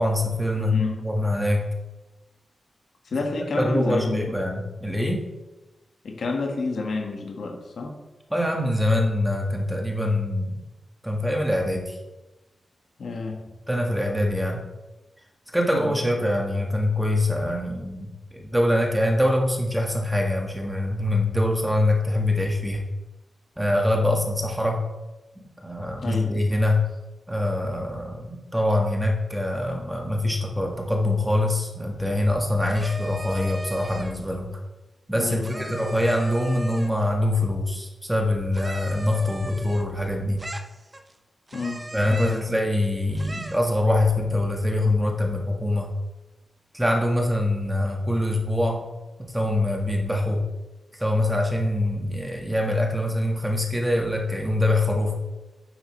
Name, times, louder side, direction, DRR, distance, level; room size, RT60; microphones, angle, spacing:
voice 1, 0.0-0.7 1.0-1.6 3.6-5.2 8.3-10.6 11.0-12.0 13.7-14.6 15.5-22.8 23.6-24.8 25.3-26.8 27.3-34.5 35.1-40.4 41.9-45.9 46.7-48.8 49.2-50.4 51.0-55.2, left 1 dB, 5° right, 0 dB, 1.7 m, -24 dB
voice 2, 0.5-1.0 3.0-4.4 6.0-7.9 13.0-13.4 15.8-15.9 26.0-26.5 35.2-35.6 41.5-41.8 42.1-42.4, left 3 dB, 70° left, 2 dB, 1.6 m, -29 dB
sound 1, 32.6-34.2 35.4-37.0 38.5-40.0 40.4-41.1 41.5-42.5 43.1-43.7, right 1 dB, 25° right, 0.8 m, -37 dB
9.3 x 8.3 x 3.3 m, 1.1 s
wide cardioid pair, 90°, 0 cm